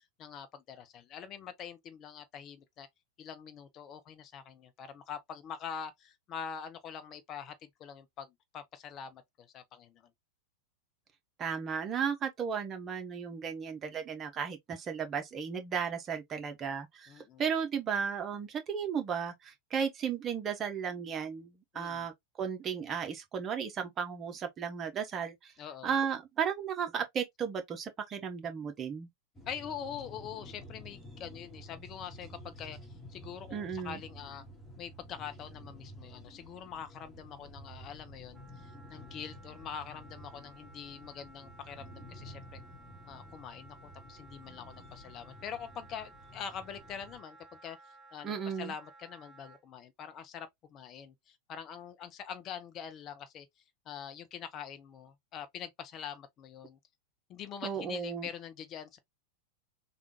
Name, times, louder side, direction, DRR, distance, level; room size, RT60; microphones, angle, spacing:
voice 1, 0.0-2.9 3.2-10.1 17.1-17.5 21.7-22.1 25.6-25.9 29.5-32.8 33.1-34.4 34.8-42.6 43.1-47.8 48.1-53.5 53.9-56.8 57.3-59.0, left 7 dB, 30° left, 0.6 m, -44 dB
voice 2, 11.4-17.1 17.4-22.1 22.4-25.5 25.8-29.1 33.5-34.0 48.2-48.7 57.6-58.3, right 7 dB, 25° right, 0.9 m, -34 dB
sound 1, 29.3-47.2, equal, 15° left, 1.6 m, -51 dB
Wind instrument woodwind instrument, 38.3-49.6, right 2 dB, 5° right, 1.9 m, -57 dB
3.6 x 2.4 x 2.9 m
figure-of-eight pair, 90°, 0 cm